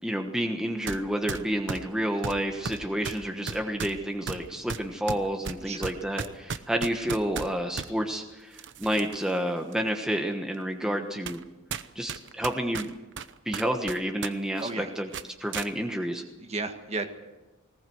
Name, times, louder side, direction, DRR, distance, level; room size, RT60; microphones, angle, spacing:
voice 1, 0.0-11.4 11.9-12.9 13.5-15.1 15.4-16.2, equal, 5° right, 3 dB, 1.2 m, -30 dB
sound 1, 0.9-1.0 1.3-7.9 8.5-9.3 9.7-9.8 10.5-10.6 11.3-11.4 11.7-14.3 14.6-14.7 15.1-15.7, right 5 dB, 60° right, 0.9 m, -35 dB
voice 2, 14.6-14.9 16.4-17.1, right 3 dB, 30° right, 6 dB, 1.7 m, -33 dB
20.0 x 18.5 x 7.9 m, 1.1 s
head